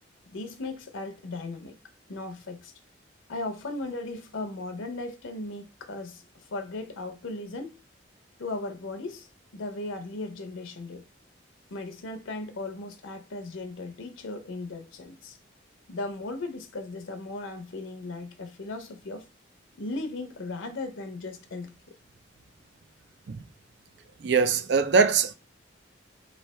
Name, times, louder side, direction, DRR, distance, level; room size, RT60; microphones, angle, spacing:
voice 1, 0.3-1.8 2.1-2.7 3.3-7.8 8.4-11.0 11.7-15.4 15.9-19.2 19.8-21.7, left 2 dB, 85° left, 0.7 m, -37 dB
voice 2, 24.2-25.3, right 5 dB, 60° right, 0.4 m, -22 dB
3.2 x 2.8 x 4.1 m
head